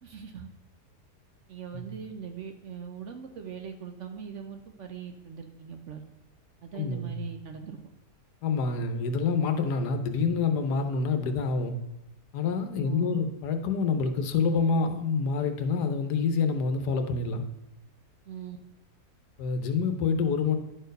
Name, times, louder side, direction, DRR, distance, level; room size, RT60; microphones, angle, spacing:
voice 1, 0.0-0.5 1.5-6.0 6.6-7.8 12.8-13.2 18.3-18.6, right 7 dB, 60° right, 5 dB, 0.8 m, -41 dB
voice 2, 6.8-7.2 8.4-11.8 12.3-17.4 19.4-20.5, left 5 dB, 80° left, 8 dB, 1.4 m, -27 dB
10.5 x 4.4 x 5.2 m, 0.90 s
omnidirectional pair, 1.7 m